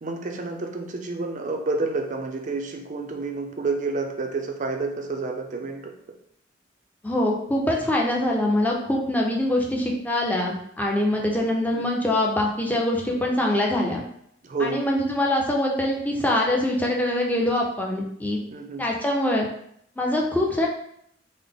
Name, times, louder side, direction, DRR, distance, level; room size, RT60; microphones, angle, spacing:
voice 1, 0.0-5.9 11.2-11.9 14.4-14.8 18.5-18.9, right 3 dB, 40° right, 3 dB, 0.5 m, -29 dB
voice 2, 7.0-14.0 14.6-18.4 18.8-19.5 20.0-20.7, left 1 dB, 10° left, -1 dB, 0.5 m, -24 dB
3.8 x 2.0 x 3.5 m, 0.71 s
head